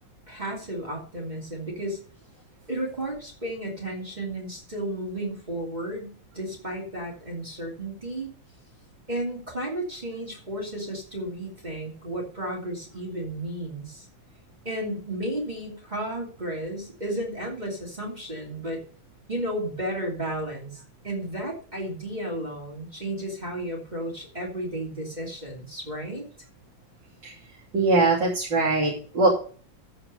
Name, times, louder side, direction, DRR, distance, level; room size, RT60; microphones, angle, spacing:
voice 1, 0.3-2.0 2.7-8.3 9.1-14.1 14.6-18.8 19.3-26.2, right 1 dB, 20° right, -2 dB, 2.9 m, -33 dB
voice 2, 27.7-29.3, right 2 dB, 75° right, -5 dB, 3.6 m, -21 dB
14.5 x 5.1 x 5.4 m, 0.42 s
omnidirectional pair, 2.0 m